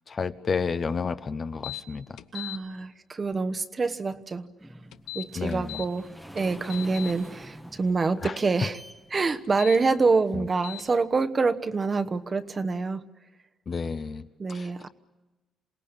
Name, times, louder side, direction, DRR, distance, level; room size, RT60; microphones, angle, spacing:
voice 1, 0.1-2.2 5.3-5.8 8.2-8.4 10.3-10.4 13.7-14.2 14.5-14.9, left 5 dB, 40° left, 1.0 m, -31 dB
sound 1, 1.6-1.8 2.2-2.6 4.9-5.9 6.4-7.1 9.4-9.8 10.6-10.8, left 17 dB, 90° left, 0.8 m, -38 dB
voice 2, 2.3-4.5 5.1-8.8 9.1-13.1 14.4-14.9, right 4 dB, 35° right, 1.1 m, -26 dB
sound 2, 4.6-10.7 11.3-11.4 12.0-12.1 12.4-12.5, equal, 5° right, 1.2 m, -46 dB
27.5 x 18.5 x 8.9 m
cardioid pair, 90°, 0 cm